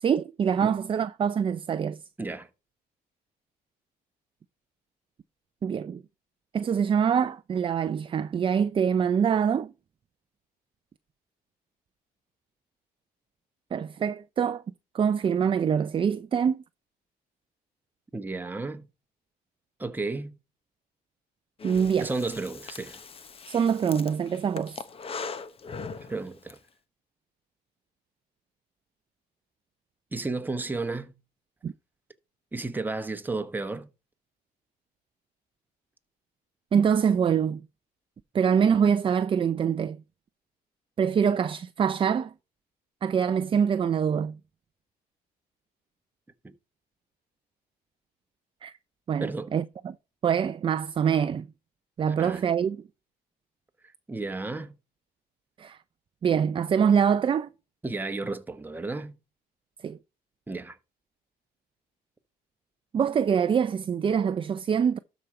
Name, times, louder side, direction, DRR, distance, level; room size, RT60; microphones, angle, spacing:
voice 1, 0.0-2.0 5.6-6.0 6.5-9.7 13.7-14.6 14.9-16.6 21.6-22.1 23.5-24.8 31.6-31.7 36.7-37.6 38.3-40.0 41.0-42.3 43.0-44.4 48.6-48.7 49.1-49.9 50.2-51.5 52.0-52.8 55.6-55.8 56.2-57.5 59.8-60.0 62.9-65.0, right 7 dB, 30° right, 0.5 m, -24 dB
voice 2, 2.2-2.5 18.1-18.9 19.8-20.4 22.0-23.0 26.1-26.6 30.1-31.2 32.5-33.9 46.4-46.5 49.2-49.5 52.2-52.4 54.1-54.8 57.8-59.2 60.5-60.8, right 3 dB, 10° right, 1.1 m, -33 dB
Breathing, 21.6-26.6, left 5 dB, 35° left, 0.9 m, -40 dB
12.5 x 5.0 x 4.3 m
cardioid pair, 110°, 17 cm